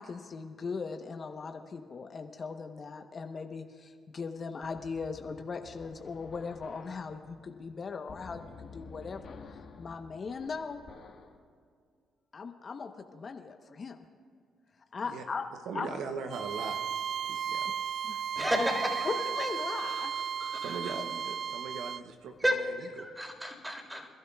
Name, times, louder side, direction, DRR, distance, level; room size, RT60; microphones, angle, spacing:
voice 1, 0.0-10.8 12.3-14.0 14.9-15.5 15.7-15.9 18.1-18.2 18.6-18.7 19.0-20.1, left 5 dB, 50° left, 6 dB, 1.0 m, -39 dB
sound 1, 4.6-11.4, left 5 dB, 65° left, 1.6 m, -51 dB
voice 2, 15.7-16.8 17.2-17.7 20.6-23.1, right 5 dB, 75° right, 6 dB, 0.8 m, -40 dB
Bowed string instrument, 16.3-22.0, right 8 dB, 55° right, 0.4 m, -35 dB
voice 3, 18.4-19.1 20.1-20.9 22.4-22.6 23.0-24.1, equal, 10° right, 2 dB, 3.9 m, -32 dB
28.0 x 12.5 x 2.4 m, 2.1 s
supercardioid pair, 55°, 0 cm